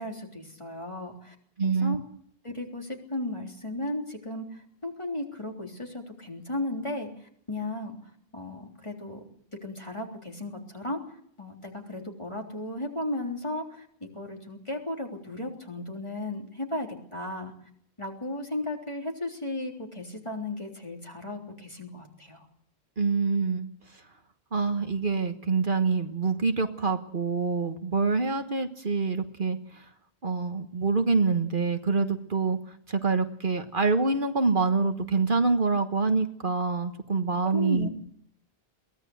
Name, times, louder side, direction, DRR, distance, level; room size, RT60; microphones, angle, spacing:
voice 1, 0.0-1.3 1.6-2.0 2.4-8.0 8.3-9.2 9.6-11.0 11.4-17.5 18.0-22.5 37.4-37.9, left 1 dB, 30° left, 1 dB, 3.6 m, -35 dB
voice 2, 1.6-2.0 23.0-23.7 24.5-29.8 30.2-32.6 32.9-37.9, right 4 dB, 55° right, 7 dB, 1.5 m, -26 dB
22.5 x 17.5 x 8.0 m, 0.66 s
omnidirectional pair, 1.0 m